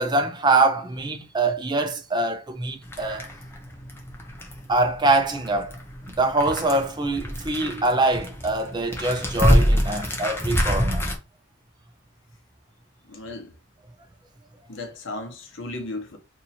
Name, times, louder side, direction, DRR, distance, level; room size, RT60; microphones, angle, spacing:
voice 1, 0.0-3.3 4.7-5.7 6.1-11.1, right 2 dB, 20° right, 0.5 m, -24 dB
sound 1, 2.8-11.2, equal, 10° left, 0.7 m, -26 dB
voice 2, 13.1-13.5 14.7-16.2, left 2 dB, 65° left, 0.9 m, -35 dB
2.9 x 2.7 x 4.2 m
head